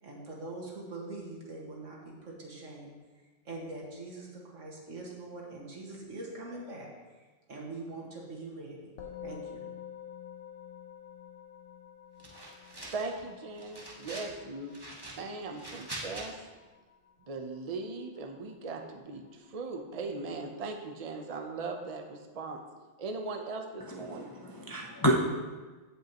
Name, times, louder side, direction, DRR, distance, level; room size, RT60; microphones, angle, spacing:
voice 1, 0.0-7.2 7.5-8.9 9.2-9.7, right 2 dB, 80° right, -2 dB, 2.0 m, -43 dB
Musical instrument, 9.0-18.5, left 8 dB, 75° left, 1.3 m, -49 dB
sound 1, 12.2-13.2 13.6-14.3 14.7-16.3, right 1 dB, 20° right, 1.1 m, -44 dB
voice 2, 12.9-14.7 15.2-16.3 17.3-22.6 23.0-24.3, right 3 dB, 35° right, 3 dB, 0.7 m, -39 dB
voice 3, 23.9-25.2, equal, 25° left, -1 dB, 0.5 m, -29 dB
15.5 x 5.4 x 3.0 m, 1.3 s
omnidirectional pair, 1.3 m